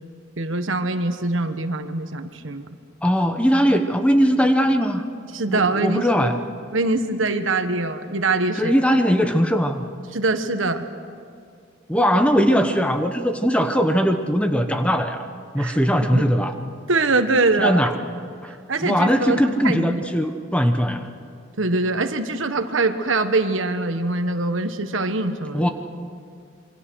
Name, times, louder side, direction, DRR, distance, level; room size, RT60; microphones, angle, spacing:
voice 1, 0.4-2.7 5.3-6.3 6.7-8.7 10.1-10.9 15.6-15.8 16.1-16.3 16.9-17.9 18.7-20.0 21.6-25.7, right 3 dB, 75° right, 8 dB, 1.4 m, -23 dB
voice 2, 3.0-5.0 5.5-6.4 8.6-9.8 11.9-15.3 15.5-16.5 17.6-18.0 18.4-18.5 18.8-21.1 25.5-25.7, equal, 5° left, 6 dB, 1.0 m, -20 dB
27.0 x 24.0 x 6.4 m, 2.2 s
head